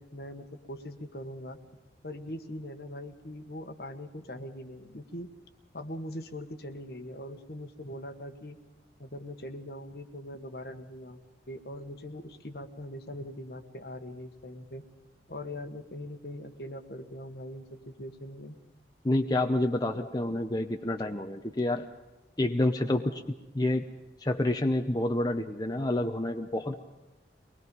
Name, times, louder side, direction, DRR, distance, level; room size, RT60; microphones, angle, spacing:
voice 1, 0.0-1.6 2.0-5.3 5.7-8.6 9.0-14.8 15.3-18.6 19.9-20.1, left 1 dB, 60° left, 7 dB, 1.5 m, -41 dB
voice 2, 19.0-21.9 22.4-23.2 23.5-23.8 24.2-26.7, left 1 dB, 20° left, 5 dB, 0.8 m, -28 dB
23.5 x 20.5 x 5.4 m, 1.1 s
head